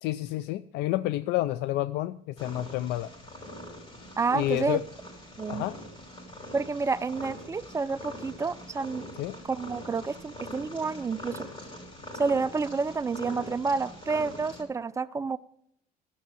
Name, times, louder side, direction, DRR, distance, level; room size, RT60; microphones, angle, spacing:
voice 1, 0.0-3.1 4.3-4.8 5.5-5.7 9.2-9.4, left 15 dB, 85° left, 15 dB, 0.4 m, -29 dB
Purr, 2.4-14.6, left 1 dB, 35° left, 5.7 m, -43 dB
voice 2, 4.2-4.8 5.4-5.6 6.5-9.1 9.4-11.5 12.2-15.4, right 4 dB, 20° right, 13 dB, 0.5 m, -29 dB
14.0 x 6.9 x 8.3 m, 0.70 s
cardioid pair, 125°, 17 cm